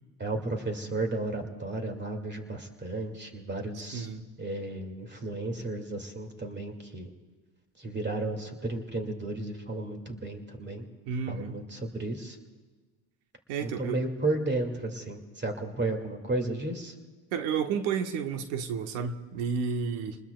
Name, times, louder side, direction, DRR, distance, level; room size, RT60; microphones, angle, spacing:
voice 1, 0.2-4.1 4.4-7.1 7.8-10.9 11.3-12.4 13.6-16.9, right 2 dB, 20° right, 5 dB, 2.3 m, -33 dB
voice 2, 3.9-4.2 11.1-11.6 13.5-14.0 17.3-20.2, right 6 dB, 75° right, 7 dB, 1.2 m, -31 dB
29.0 x 20.0 x 2.3 m, 1.4 s
hypercardioid pair, 70°, 48 cm